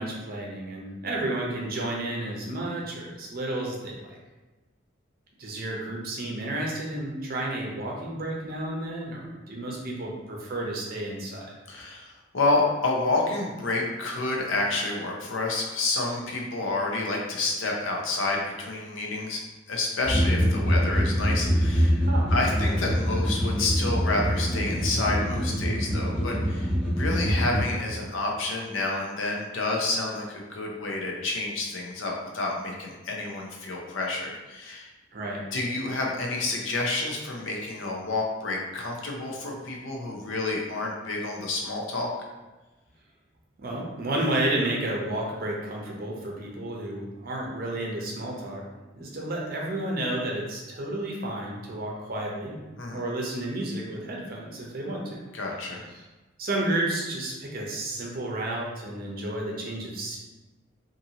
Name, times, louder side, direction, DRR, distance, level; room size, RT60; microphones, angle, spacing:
voice 1, 0.0-4.2 5.4-11.5 22.0-22.3 35.1-35.4 43.6-48.6 48.9-52.6 52.9-55.2 55.7-56.1 56.4-60.2, right 1 dB, 50° right, -2 dB, 0.6 m, -31 dB
voice 2, 11.7-19.4 19.7-22.0 22.3-34.9 35.5-42.1 52.8-53.0 55.3-55.8, left 2 dB, 85° left, -1 dB, 0.6 m, -29 dB
sound 1, 20.0-27.6, equal, 5° left, 0.7 m, -24 dB
2.7 x 2.6 x 2.7 m, 1.1 s
head